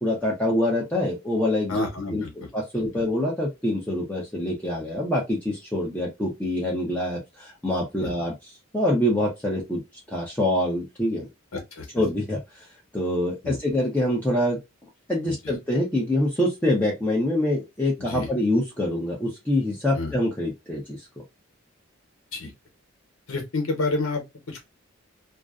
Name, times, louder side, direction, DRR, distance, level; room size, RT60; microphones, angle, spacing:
voice 1, 0.0-1.8 2.1-2.2 2.5-8.3 8.7-9.8 10.1-11.3 11.9-12.4 12.9-14.6 15.1-21.0, left 1 dB, 10° left, 0.6 m, -25 dB
voice 2, 1.7-2.5 8.0-8.1 11.5-12.0 13.4-13.6 15.3-15.4 18.0-18.3 19.9-20.1 22.3-22.5 23.3-24.6, left 2 dB, 90° left, 1.0 m, -29 dB
2.5 x 2.1 x 2.3 m
head